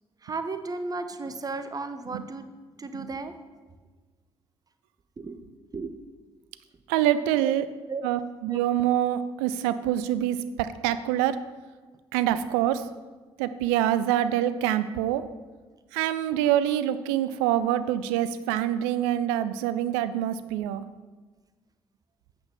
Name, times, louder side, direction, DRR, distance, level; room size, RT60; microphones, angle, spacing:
voice 1, 0.2-2.5 2.8-3.3 5.2-5.4 5.7-6.0 7.4-7.5 7.9-8.0 8.5-8.6, right 3 dB, 25° right, 9 dB, 0.7 m, -34 dB
voice 2, 6.9-7.7 8.0-11.4 12.1-12.8 13.4-15.2 15.9-20.8, right 11 dB, 65° right, 13 dB, 0.4 m, -25 dB
8.5 x 3.7 x 6.2 m, 1.3 s
figure-of-eight pair, 40°, 14 cm